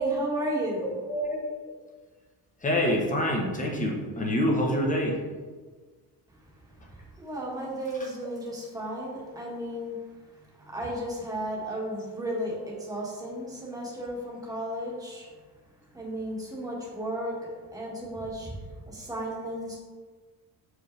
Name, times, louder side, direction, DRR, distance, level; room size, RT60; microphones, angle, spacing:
voice 1, 0.0-1.0 6.9-9.9 10.5-15.3 15.9-18.6 18.9-19.8, right 1 dB, 10° right, -5 dB, 1.4 m, -33 dB
voice 2, 1.1-1.4 2.6-5.2, equal, 20° left, -1 dB, 0.9 m, -26 dB
6.8 x 5.0 x 3.2 m, 1.4 s
cardioid pair, 160°, 40 cm